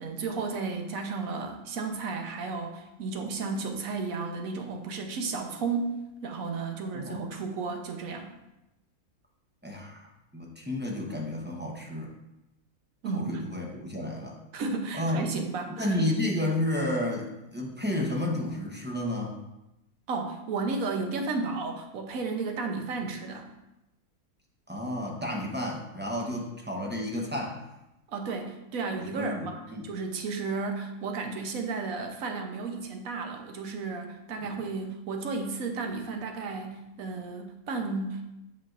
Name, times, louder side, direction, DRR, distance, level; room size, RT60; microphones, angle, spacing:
voice 1, 0.0-8.3 13.0-13.3 14.5-16.0 20.1-23.5 28.1-38.2, right 4 dB, 70° right, 4 dB, 1.1 m, -33 dB
voice 2, 9.6-10.1 10.3-12.1 13.1-14.4 14.9-15.2 15.8-19.3 24.7-27.6 28.9-29.9 34.4-34.5, left 1 dB, 10° right, -2 dB, 0.5 m, -31 dB
7.9 x 5.7 x 2.5 m, 0.92 s
omnidirectional pair, 1.6 m